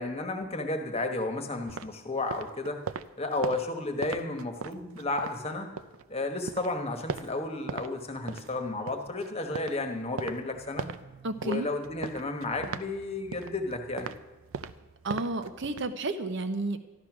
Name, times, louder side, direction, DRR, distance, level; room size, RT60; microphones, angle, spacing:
voice 1, 0.0-2.8 3.2-5.7 6.1-10.9 11.4-14.1, left 2 dB, 30° left, 5 dB, 1.3 m, -32 dB
sound 1, 1.7-6.1 6.4-7.9 8.2-15.9, right 5 dB, 75° right, 0.5 m, -40 dB
voice 2, 11.2-11.7 15.0-16.8, right 2 dB, 60° right, 10 dB, 0.9 m, -31 dB
13.0 x 12.0 x 6.1 m, 1.1 s
head